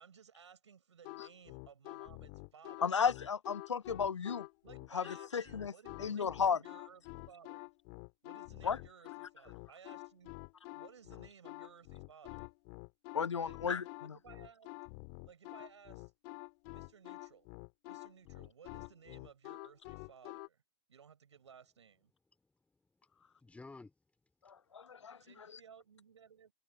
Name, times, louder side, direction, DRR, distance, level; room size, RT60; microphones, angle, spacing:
voice 1, 0.0-2.9 4.6-7.7 8.2-10.3 10.7-12.5 13.3-13.6 14.0-14.7 15.2-16.1 16.7-17.5 17.9-20.6 20.9-22.1 25.2-26.5, right 7 dB, 80° right, 6.3 m, -59 dB
sound 1, 1.0-20.5, left 33 dB, 50° left, 2.0 m, -48 dB
voice 2, 2.8-4.5 4.9-5.0 5.3-5.7 6.0-6.6 8.6-8.8 13.1-13.8 24.5-25.2, left 6 dB, 90° left, 0.5 m, -33 dB
voice 3, 22.4-24.6 25.0-25.3, left 3 dB, 10° left, 4.3 m, -57 dB
hypercardioid pair, 100°, 15 cm